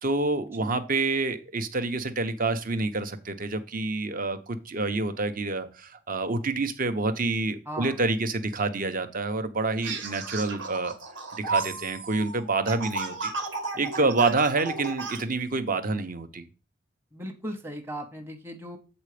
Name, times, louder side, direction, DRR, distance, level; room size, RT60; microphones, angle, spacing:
voice 1, 0.0-10.9 11.3-13.3 13.8-16.4, right 3 dB, 50° right, 9 dB, 0.9 m, -27 dB
voice 2, 7.7-8.0 13.7-14.1 17.1-18.8, equal, 15° right, 3 dB, 1.0 m, -38 dB
sound 1, 9.8-15.2, right 3 dB, 80° right, 1.7 m, -33 dB
8.0 x 4.2 x 5.0 m, 0.32 s
head